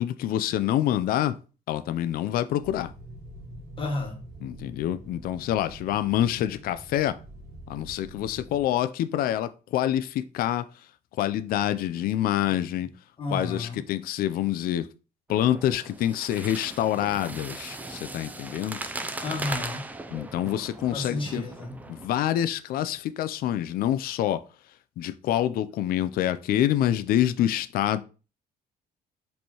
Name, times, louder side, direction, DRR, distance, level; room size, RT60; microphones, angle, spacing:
voice 1, 0.0-1.4 1.7-2.9 4.4-7.1 7.7-10.6 11.2-12.9 13.3-14.8 15.3-18.8 20.1-21.4 21.9-24.4 25.0-28.0, left 12 dB, 60° left, 0.4 m, -26 dB
sound 1, 2.6-8.6, right 1 dB, 70° right, 1.7 m, -45 dB
voice 2, 3.8-4.2 13.2-13.8 19.2-19.9 20.9-21.7, left 2 dB, 30° left, 1.3 m, -32 dB
sound 2, 15.3-22.1, right 2 dB, 10° right, 0.3 m, -38 dB
4.3 x 3.3 x 2.9 m
cardioid pair, 110°, 17 cm